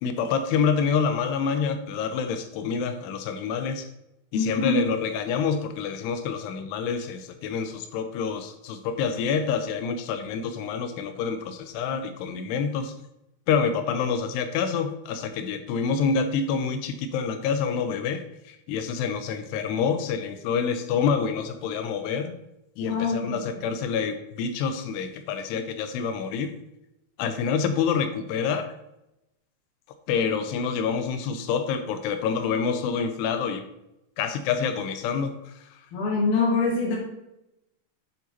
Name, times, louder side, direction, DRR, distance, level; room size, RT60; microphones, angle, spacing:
voice 1, 0.0-3.9 4.3-12.9 13.5-22.3 22.8-26.5 27.2-28.7 30.1-33.6 34.2-35.6, left 6 dB, 85° left, 8 dB, 2.8 m, -27 dB
voice 2, 4.3-4.8 22.8-23.4 35.9-37.0, left 3 dB, 65° left, -3 dB, 3.5 m, -24 dB
9.6 x 4.4 x 4.1 m, 0.88 s
omnidirectional pair, 4.7 m